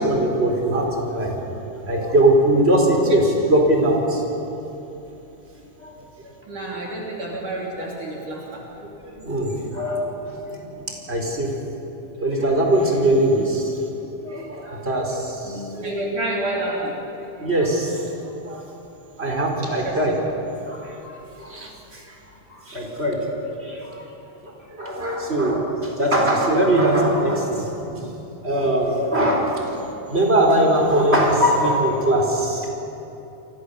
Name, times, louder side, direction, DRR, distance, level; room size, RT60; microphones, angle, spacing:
voice 1, 0.0-4.2 5.8-5.9 6.2-6.3 8.8-11.5 12.2-13.8 14.2-16.0 17.3-18.7 19.2-20.2 20.7-22.2 22.5-24.0 24.4-28.1 28.4-29.6 29.9-32.7, right 1 dB, 15° right, 0 dB, 4.1 m, -21 dB
voice 2, 6.5-8.6 15.8-17.0 19.6-20.2, right 1 dB, 50° right, -3 dB, 4.2 m, -29 dB
29.5 x 24.5 x 7.1 m, 3.0 s
omnidirectional pair, 5.2 m